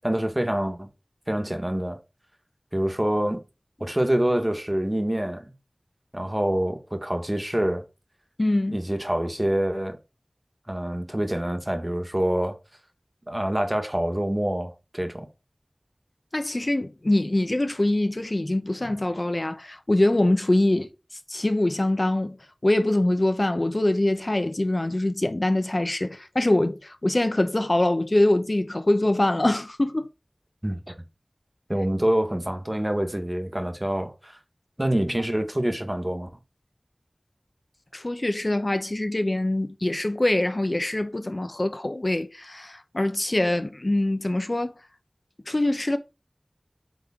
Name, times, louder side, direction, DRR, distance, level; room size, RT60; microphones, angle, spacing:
voice 1, 0.0-0.9 1.3-2.0 2.7-3.4 3.8-5.5 6.1-7.8 8.7-10.0 10.7-12.6 13.3-15.3 30.6-30.9 31.7-34.4 34.8-36.3, right 1 dB, 25° right, 1.2 m, -26 dB
voice 2, 8.4-8.8 16.3-22.4 22.6-30.1 37.9-44.8 45.5-46.0, left 1 dB, 50° left, 0.7 m, -24 dB
8.3 x 3.7 x 3.6 m
wide cardioid pair, 45°, 0 cm